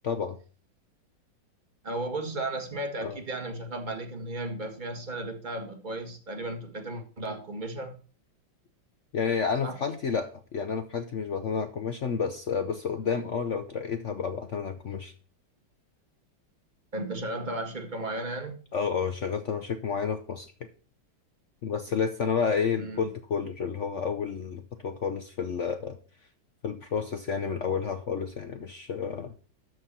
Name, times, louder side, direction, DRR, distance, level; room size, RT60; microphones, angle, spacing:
voice 1, 0.0-0.4 3.0-3.2 9.1-15.1 18.7-20.5 21.6-26.0 26.6-29.3, left 6 dB, 65° left, 0.7 m, -30 dB
voice 2, 1.8-8.0 9.6-9.8 16.9-18.6 22.8-23.1, right 2 dB, 25° right, 1.6 m, -35 dB
13.0 x 4.6 x 5.7 m
omnidirectional pair, 2.3 m